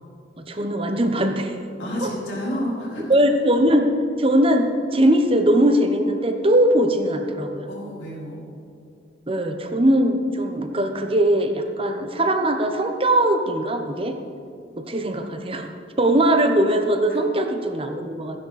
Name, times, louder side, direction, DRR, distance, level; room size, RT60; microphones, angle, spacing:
voice 1, 0.4-1.5 2.0-2.1 3.1-3.9 4.2-7.7 9.3-14.2 14.8-15.7 16.0-18.4, right 1 dB, 30° right, 5 dB, 1.0 m, -20 dB
voice 2, 1.8-3.1 7.7-8.4 17.1-17.2, equal, 75° left, -5 dB, 3.7 m, -30 dB
15.0 x 10.0 x 4.2 m, 2.3 s
head